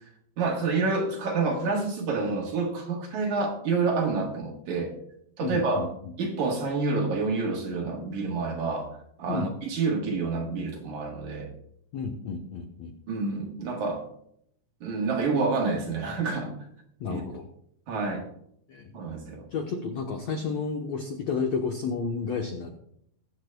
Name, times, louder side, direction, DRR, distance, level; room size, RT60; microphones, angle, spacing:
voice 1, 0.4-4.9 5.4-5.8 6.2-8.9 9.2-11.5 13.1-14.1 14.8-16.6 17.1-17.2 17.9-18.3 18.9-19.5, right 4 dB, 60° right, 1 dB, 2.3 m, -28 dB
voice 2, 5.4-5.9 9.3-9.5 11.9-12.9 17.0-17.5 18.7-18.9 19.5-22.7, left 5 dB, 90° left, 2 dB, 1.4 m, -31 dB
21.5 x 8.2 x 2.2 m, 0.70 s
omnidirectional pair, 4.5 m